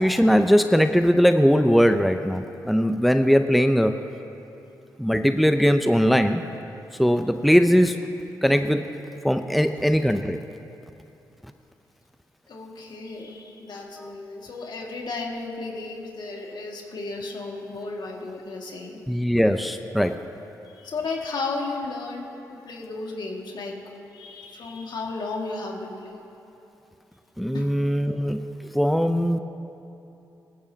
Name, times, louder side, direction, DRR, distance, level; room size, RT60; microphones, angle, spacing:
voice 1, 0.0-4.0 5.0-6.4 7.0-8.0 8.4-8.8 9.2-10.4 19.1-20.2 27.4-28.4 28.7-29.4, equal, ahead, 7 dB, 0.6 m, -20 dB
voice 2, 12.5-19.0 20.7-23.8 24.1-26.3 27.5-27.7, left 3 dB, 65° left, 0 dB, 2.1 m, -34 dB
19.0 x 14.5 x 2.9 m, 2.8 s
supercardioid pair, 50°, 8 cm